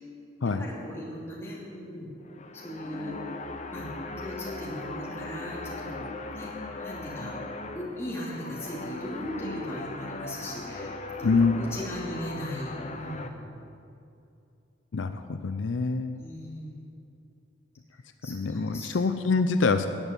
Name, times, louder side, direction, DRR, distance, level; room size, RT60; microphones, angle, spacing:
voice 1, 0.4-2.1 2.5-3.2 3.7-6.1 6.3-6.5 6.8-7.4 7.7-13.5 16.2-16.8 18.2-19.3, left 1 dB, 15° left, -6 dB, 3.0 m, -38 dB
sound 1, 2.2-13.3, left 2 dB, 35° left, 0.8 m, -39 dB
voice 2, 11.2-11.5 14.9-16.2 18.2-19.9, left 4 dB, 75° left, 9 dB, 0.5 m, -25 dB
10.5 x 9.1 x 8.2 m, 2.6 s
head